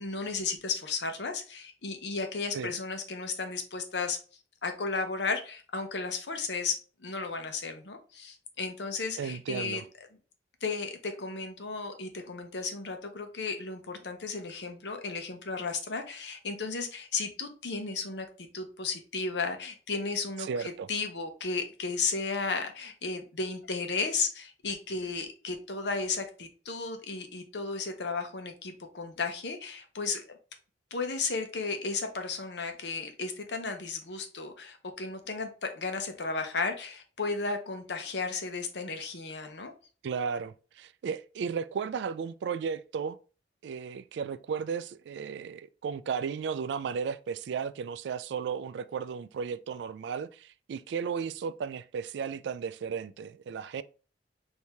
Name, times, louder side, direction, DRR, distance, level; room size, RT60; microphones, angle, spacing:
voice 1, 0.0-4.2 4.6-9.8 10.6-30.3 30.9-39.7, left 4 dB, 70° left, 0.8 m, -34 dB
voice 2, 9.2-9.8 20.4-20.9 40.0-43.2 43.6-53.8, right 6 dB, 70° right, 0.3 m, -34 dB
4.6 x 2.7 x 3.3 m
head